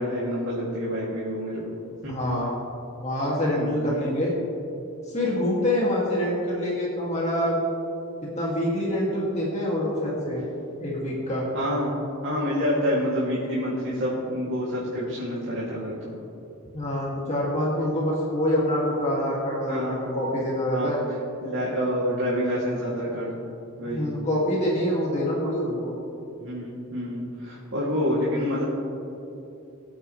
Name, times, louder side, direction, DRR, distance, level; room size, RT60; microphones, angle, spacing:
voice 1, 0.0-1.7 2.0-2.1 3.5-3.9 11.5-16.1 19.7-20.1 20.7-20.9 21.4-23.3 23.8-24.1 26.4-28.6, equal, 60° right, -8 dB, 2.8 m, -28 dB
voice 2, 2.1-2.6 3.0-4.3 5.1-7.6 8.2-10.4 10.8-11.5 16.7-21.0 23.8-25.9, left 1 dB, 30° left, -5 dB, 2.5 m, -26 dB
23.0 x 8.8 x 3.3 m, 2.9 s
head